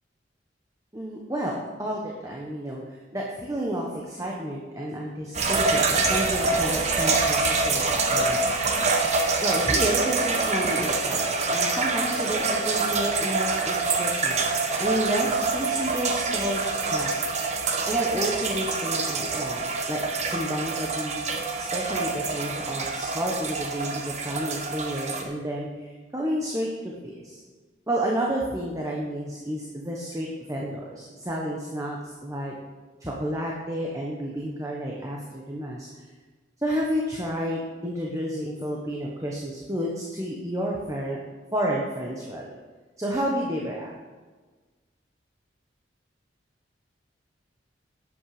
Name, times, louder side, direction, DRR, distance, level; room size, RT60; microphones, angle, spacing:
voice 1, 0.9-2.8 3.1-7.8 8.1-8.4 9.4-17.1 17.8-21.3 21.6-27.4 27.9-32.5 33.0-35.9 36.6-41.2 41.5-42.6 43.0-43.9, equal, 20° right, -2 dB, 1.3 m, -30 dB
sound 1, 5.3-25.2, right 3 dB, 40° right, 1.2 m, -26 dB
11.5 x 8.6 x 5.0 m, 1.3 s
head